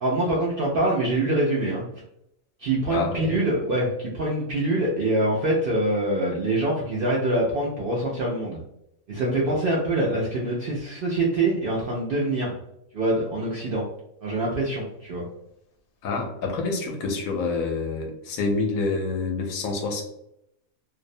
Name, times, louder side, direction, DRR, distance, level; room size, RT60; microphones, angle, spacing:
voice 1, 0.0-1.8 2.6-8.6 9.1-12.6 12.9-13.8 14.2-15.3, right 1 dB, 70° right, -4 dB, 0.5 m, -24 dB
voice 2, 2.9-3.3 16.0-20.0, left 3 dB, 80° left, 2 dB, 1.0 m, -27 dB
2.5 x 2.0 x 2.6 m, 0.80 s
omnidirectional pair, 1.4 m